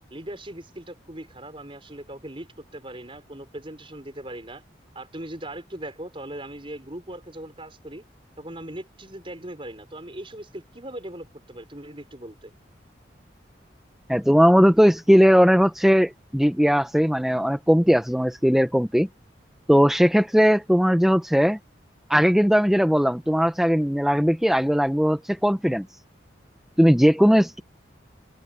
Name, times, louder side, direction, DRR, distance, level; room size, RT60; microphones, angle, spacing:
voice 1, 0.1-4.6 4.9-8.0 8.4-12.5, right 1 dB, 30° right, 5.8 m, -39 dB
voice 2, 14.1-19.1 19.7-21.6 22.1-25.9 26.8-27.6, equal, ahead, 0.9 m, -19 dB
open air
head